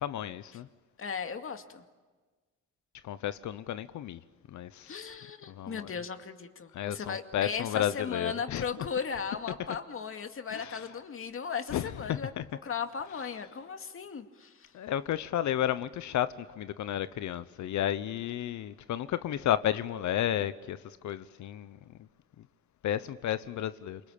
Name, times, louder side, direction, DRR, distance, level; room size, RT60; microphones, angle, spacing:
voice 1, 0.0-0.7 3.1-4.2 4.5-4.7 5.6-5.9 6.7-8.6 10.5-10.8 11.7-12.4 14.7-16.3 16.6-20.8 21.0-21.8 22.8-24.0, left 11 dB, 70° left, 1.0 m, -32 dB
voice 2, 1.0-1.8 4.9-12.3 12.6-14.7, left 6 dB, 45° left, 2.3 m, -37 dB
27.5 x 24.5 x 8.9 m
cardioid pair, 90°, 30 cm